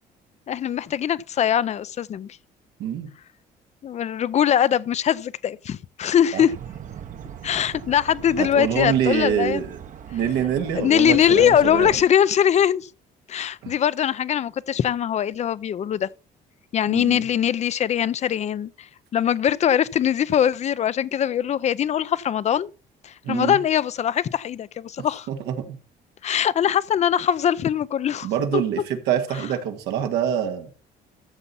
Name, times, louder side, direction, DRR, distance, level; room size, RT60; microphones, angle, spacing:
voice 1, 0.5-2.4 3.8-6.5 7.4-9.6 10.7-12.9 13.3-16.1 16.7-18.9 19.1-22.7 23.0-25.3 26.2-28.6, left 9 dB, 40° left, 0.6 m, -22 dB
voice 2, 2.8-3.1 6.3-6.4 8.4-9.8 10.1-11.9 13.6-13.7 16.9-17.2 23.2-23.6 25.0-25.8 28.2-30.7, right 9 dB, 85° right, 1.8 m, -25 dB
sound 1, 6.5-12.1, right 9 dB, 50° right, 1.0 m, -40 dB
13.5 x 6.9 x 4.2 m
cardioid pair, 110°, 17 cm